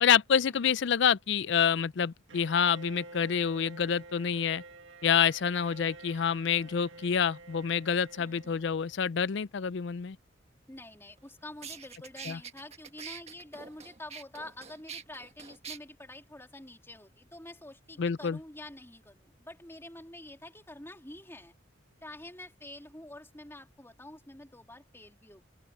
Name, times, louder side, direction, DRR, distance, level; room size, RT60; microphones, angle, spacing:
voice 1, 0.0-4.6 5.0-10.2 12.2-12.4 18.0-18.4, left 7 dB, 60° left, 0.4 m, -27 dB
Bowed string instrument, 2.3-9.2, right 2 dB, 70° right, 2.1 m, -50 dB
voice 2, 8.2-8.6 10.7-21.5 22.0-25.4, left 1 dB, 10° left, 3.3 m, -47 dB
sound 1, 11.2-11.3 11.6-15.8, right 6 dB, 35° right, 1.5 m, -44 dB
open air
head